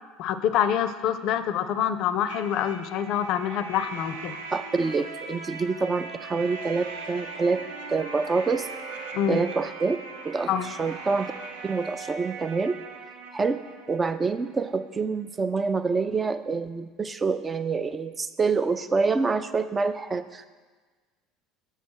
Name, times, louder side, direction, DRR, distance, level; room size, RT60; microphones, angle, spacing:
voice 1, 0.2-4.4 9.1-9.4 10.5-10.7, left 9 dB, 55° left, 11 dB, 0.4 m, -26 dB
sound 1, 2.3-15.0, right 4 dB, 75° right, 0.7 m, -40 dB
voice 2, 4.5-7.6 7.9-8.7 9.3-11.3 11.6-12.8 13.3-13.6 13.9-20.5, right 4 dB, 25° right, 12 dB, 0.5 m, -26 dB
7.2 x 5.6 x 6.2 m, 1.4 s
figure-of-eight pair, 65°, 0 cm